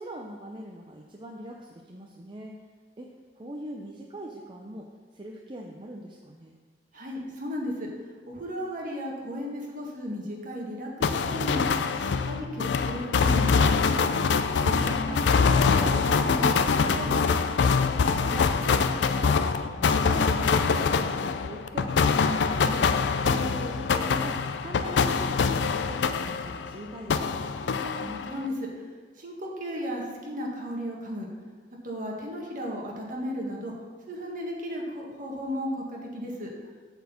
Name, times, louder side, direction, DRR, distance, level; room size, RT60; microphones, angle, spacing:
voice 1, 0.0-2.6 3.0-3.1 3.3-4.9 5.1-6.6 14.7-15.4 17.8-22.9 23.2-27.4, right 1 dB, 30° right, 0 dB, 0.6 m, -41 dB
voice 2, 6.9-7.9 8.2-11.6 11.9-14.1 14.6-17.2 27.7-28.7 29.2-31.3 31.8-33.7 34.1-36.5, equal, 50° right, -1 dB, 1.6 m, -35 dB
sound 1, 11.0-26.7 27.1-28.4, left 5 dB, 75° left, 0.4 m, -24 dB
7.9 x 4.3 x 7.0 m, 1.5 s
head